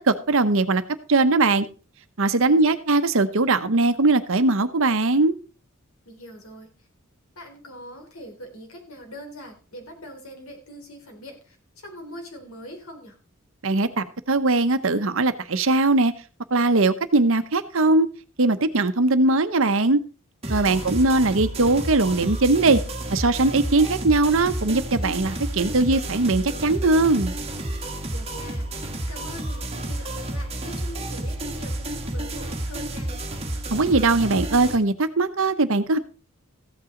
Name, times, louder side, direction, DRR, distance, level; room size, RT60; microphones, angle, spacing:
voice 1, 0.1-0.8 1.1-1.7 2.2-5.3 13.6-16.1 16.5-18.1 18.4-20.0 20.5-22.8 23.1-27.3 33.7-36.0, right 2 dB, 65° right, 11 dB, 0.9 m, -20 dB
voice 2, 2.4-2.7 6.1-6.7 7.4-13.2 20.6-21.1 28.0-33.1, equal, 80° left, 3 dB, 3.8 m, -42 dB
sound 1, 20.4-34.7, right 1 dB, 30° right, 1.7 m, -31 dB
15.0 x 8.8 x 3.8 m, 0.36 s
head